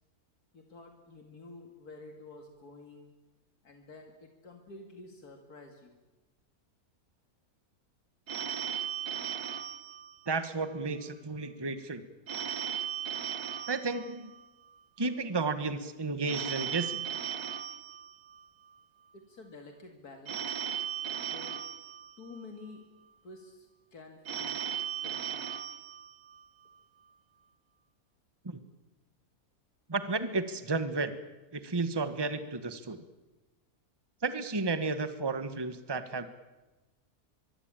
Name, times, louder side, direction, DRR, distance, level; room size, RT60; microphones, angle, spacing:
voice 1, 0.5-3.1 3.6-6.0 19.1-20.6 21.2-21.6 22.2-22.9 23.2-24.7 25.0-25.5 31.5-31.6, left 3 dB, 80° left, 4 dB, 2.8 m, -50 dB
Telephone, 8.3-10.8 12.3-14.8 16.3-18.8 20.3-22.7 24.3-26.7, right 9 dB, 80° right, 2.0 m, -37 dB
voice 2, 10.3-12.0 13.7-14.3 15.0-17.0 28.4-28.6 29.9-31.1 31.5-33.0 34.2-36.3, right 3 dB, 15° right, 11 dB, 1.3 m, -32 dB
24.0 x 23.5 x 8.9 m, 1.1 s
omnidirectional pair, 1.6 m